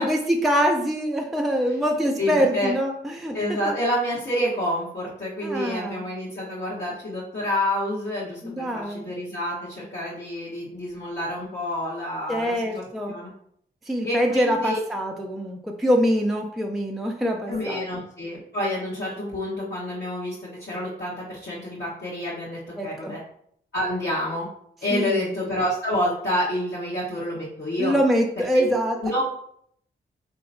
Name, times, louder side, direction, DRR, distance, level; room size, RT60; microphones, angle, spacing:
voice 1, 0.0-3.4 3.7-3.8 5.4-6.0 8.4-9.1 12.3-13.2 13.9-17.9 22.8-23.2 24.9-25.3 27.8-29.0, equal, ahead, 1 dB, 0.4 m, -24 dB
voice 2, 2.2-2.7 3.3-13.3 14.0-14.8 17.5-23.2 23.7-24.5 24.8-28.0 28.5-28.7 29.0-29.2, left 1 dB, 55° left, -9 dB, 1.2 m, -28 dB
3.2 x 2.7 x 2.6 m, 0.67 s
supercardioid pair, 40°, 21 cm